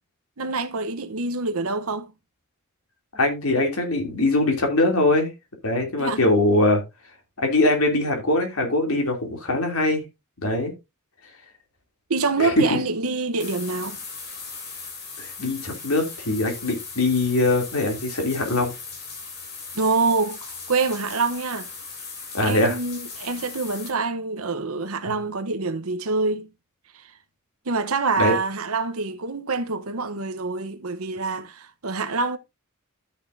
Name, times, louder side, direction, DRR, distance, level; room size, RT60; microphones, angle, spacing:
voice 1, 0.4-2.1 6.0-6.2 12.1-14.0 19.7-21.7 22.4-26.5 26.9-27.0 27.7-32.4, right 3 dB, 70° right, 1.0 m, -26 dB
voice 2, 3.1-5.3 5.6-6.8 7.4-10.0 10.4-10.7 12.4-12.6 15.2-18.7 22.3-22.8 25.0-25.2 28.2-28.3, left 2 dB, 75° left, 3.0 m, -22 dB
sound 1, 13.4-23.9, left 4 dB, 50° left, 3.2 m, -38 dB
13.0 x 6.6 x 2.6 m
head